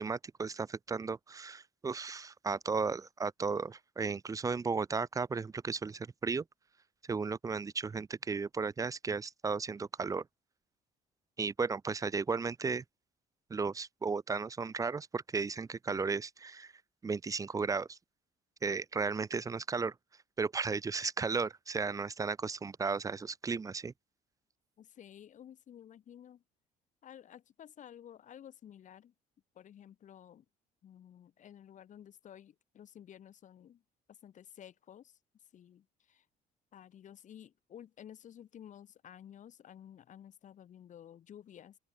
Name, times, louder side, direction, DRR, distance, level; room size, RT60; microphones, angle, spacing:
voice 1, 0.0-6.4 7.1-10.2 11.4-12.8 13.5-16.7 17.0-18.0 18.6-19.9 20.4-23.9, right 4 dB, 20° right, 0.5 m, -35 dB
voice 2, 24.8-26.4 27.0-29.1 29.5-30.4 30.8-33.8 34.1-35.2 35.5-36.3 36.7-41.8, left 10 dB, 50° left, 1.2 m, -53 dB
open air
cardioid pair, 110°, 17 cm